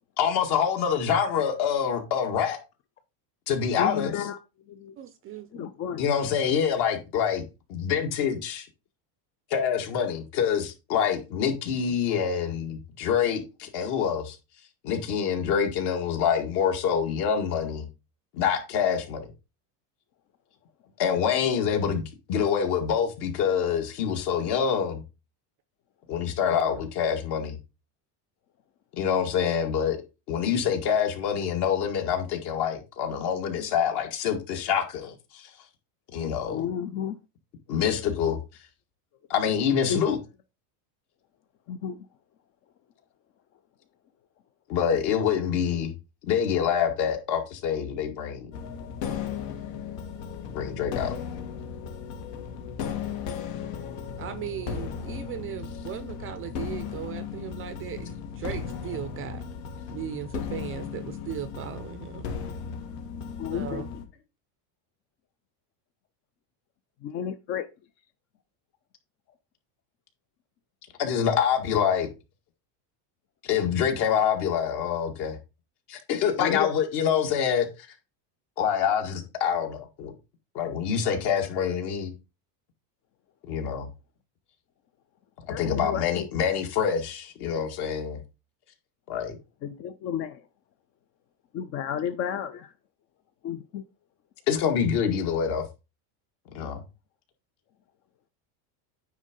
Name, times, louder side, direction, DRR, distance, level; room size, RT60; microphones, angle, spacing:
voice 1, 0.2-2.6 3.5-4.3 6.0-7.4 7.7-8.7 9.5-14.4 14.8-17.9 18.3-19.3 21.0-25.0 26.1-27.6 29.0-30.0 30.3-35.5 36.1-36.7 37.7-38.4 39.3-40.2 44.7-45.9 46.3-48.5 50.5-51.1 71.0-72.1 73.4-75.4 75.9-77.7 78.6-80.1 80.5-82.1 83.5-83.9 85.5-88.2 89.1-89.4 94.5-95.6 96.5-96.8, left 7 dB, 50° left, 2.0 m, -26 dB
voice 2, 3.8-4.3 4.8-4.9 5.6-6.0 36.5-37.2 39.9-40.0 41.7-41.9 63.4-63.8 67.0-67.7 76.4-76.7 85.5-86.0 89.6-90.3 91.5-92.5 93.4-93.8, left 9 dB, 30° left, 0.4 m, -31 dB
voice 3, 5.0-5.7 26.5-26.8 54.2-59.4 59.9-62.3 63.5-63.9, right 10 dB, 30° right, 0.4 m, -37 dB
sound 1, 48.5-64.1, left 7 dB, 75° left, 2.1 m, -36 dB
9.3 x 3.6 x 5.1 m
cardioid pair, 150°, 49 cm